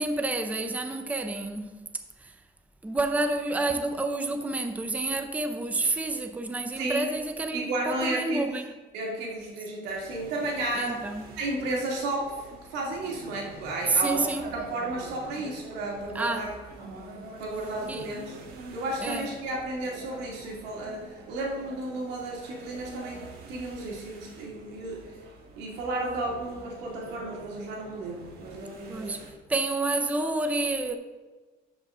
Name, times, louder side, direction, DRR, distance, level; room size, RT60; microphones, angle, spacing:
voice 1, 0.0-1.8 2.2-2.3 2.8-8.6 10.8-11.3 13.9-14.4 16.1-16.5 17.9-18.1 19.0-19.3 28.9-29.2 29.5-31.0, right 2 dB, 10° right, 0.6 m, -29 dB
voice 2, 7.5-8.6 8.9-11.0 11.4-16.5 17.4-18.4 18.7-25.1 25.6-29.2, right 2 dB, 90° right, 2.3 m, -33 dB
sound 1, 9.9-29.3, right 2 dB, 65° right, 1.7 m, -46 dB
12.5 x 5.4 x 3.7 m
cardioid pair, 110°, 17 cm